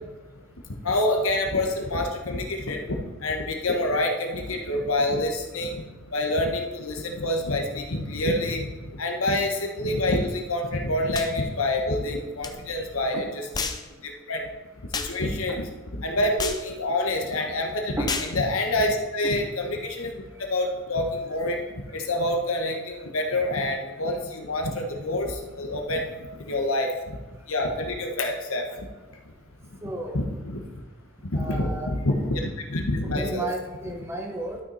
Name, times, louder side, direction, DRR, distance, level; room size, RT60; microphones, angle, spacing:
voice 1, 0.8-2.8 3.2-5.8 6.1-8.6 9.0-13.7 14.0-14.4 15.1-15.7 16.0-18.0 18.3-20.1 20.4-21.6 21.9-25.3 25.6-26.1 26.4-26.9 27.5-28.6 30.1-30.6 31.3-32.4 32.7-33.5, left 1 dB, 75° left, 3 dB, 1.3 m, -27 dB
sound 1, 11.1-11.3 12.4-12.5 13.5-13.9 14.9-15.2 16.4-16.7 18.1-18.4, left 5 dB, 20° left, 0.5 m, -30 dB
voice 2, 13.1-13.5 15.5-15.6 18.0-18.2 19.2-19.4 29.8-30.2 31.3-31.9 33.1-34.6, right 1 dB, 10° right, 1 dB, 1.0 m, -33 dB
12.5 x 5.9 x 4.2 m, 1.2 s
head